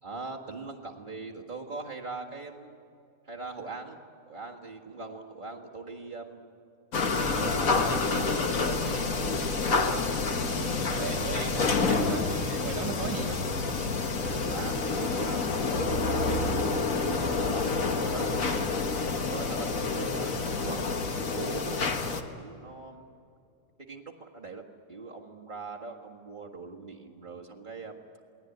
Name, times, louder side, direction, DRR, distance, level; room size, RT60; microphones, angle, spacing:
voice 1, 0.0-2.8 3.2-6.5 7.2-9.2 9.5-9.8 14.4-18.7 19.3-21.8 22.4-23.0 23.9-24.6 24.9-28.0, right 3 dB, 30° right, -1 dB, 0.9 m, -41 dB
sound 1, 6.9-22.2, left 3 dB, 85° left, 0.7 m, -28 dB
voice 2, 10.5-13.5, right 7 dB, 65° right, 6 dB, 2.2 m, -37 dB
28.5 x 20.0 x 9.2 m, 2.5 s
omnidirectional pair, 3.6 m